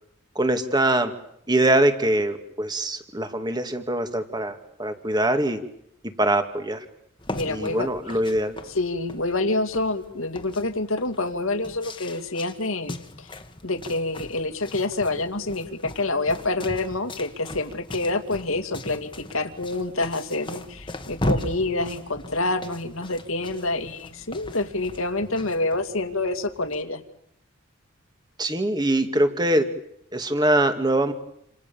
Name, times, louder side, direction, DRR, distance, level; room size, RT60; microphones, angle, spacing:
voice 1, 0.4-1.1 1.5-5.6 6.2-6.9 7.5-8.6 28.4-29.7 30.1-31.1, right 1 dB, 20° right, 8 dB, 2.2 m, -23 dB
sound 1, 7.2-26.8, left 1 dB, 25° left, 1.8 m, -38 dB
voice 2, 7.3-7.9 8.7-13.3 13.6-27.0, left 2 dB, 75° left, 7 dB, 2.6 m, -27 dB
29.0 x 27.0 x 7.1 m, 0.75 s
head